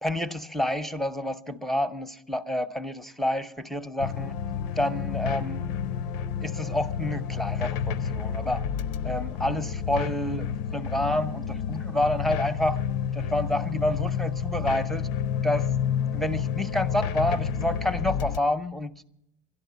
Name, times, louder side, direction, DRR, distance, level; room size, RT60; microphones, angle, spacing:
voice 1, 0.0-4.4 4.8-5.6 6.4-8.7 9.0-10.5 10.7-12.8 13.1-15.1 15.4-15.7 16.1-19.0, left 1 dB, ahead, 0.6 m, -28 dB
sound 1, 4.0-18.4, left 7 dB, 85° left, 0.6 m, -30 dB
12.0 x 11.0 x 9.3 m
hypercardioid pair, 65°, 41 cm